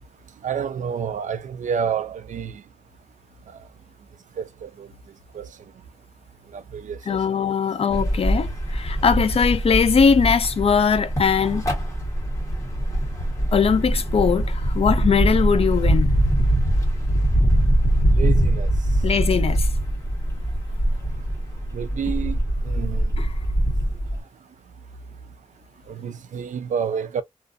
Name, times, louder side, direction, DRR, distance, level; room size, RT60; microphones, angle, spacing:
voice 1, 0.4-2.6 4.4-4.9 5.3-5.5 6.5-7.0 18.1-18.7 21.7-22.4 22.6-23.1 25.9-27.2, right 7 dB, 80° right, 0.4 m, -29 dB
voice 2, 7.1-11.6 13.5-16.1 19.0-19.7 23.2-23.3, left 6 dB, 50° left, 0.4 m, -20 dB
sound 1, 7.9-24.2, right 1 dB, 25° left, 1.2 m, -22 dB
2.4 x 2.4 x 2.5 m
wide cardioid pair, 120°, 13 cm